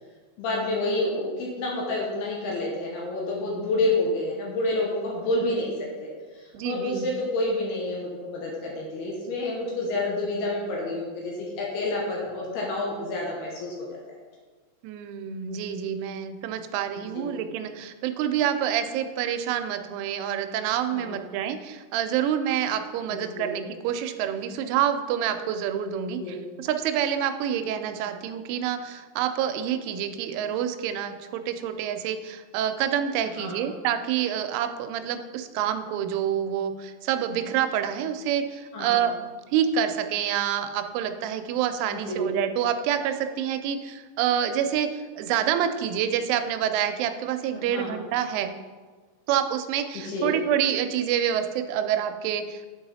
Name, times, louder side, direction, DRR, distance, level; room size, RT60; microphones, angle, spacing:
voice 1, 0.4-5.7 6.0-6.1 6.3-13.9 17.1-17.4 20.9-21.2 23.1-23.5 26.2-26.4 33.4-33.7 38.7-39.0 41.9-42.3 47.7-48.0 50.0-50.3, left 2 dB, 70° left, -3 dB, 2.7 m, -29 dB
voice 2, 6.5-7.1 14.8-39.1 39.5-48.5 49.3-52.7, right 9 dB, 90° right, 8 dB, 3.0 m, -27 dB
8.6 x 4.7 x 4.1 m, 1.4 s
omnidirectional pair, 5.5 m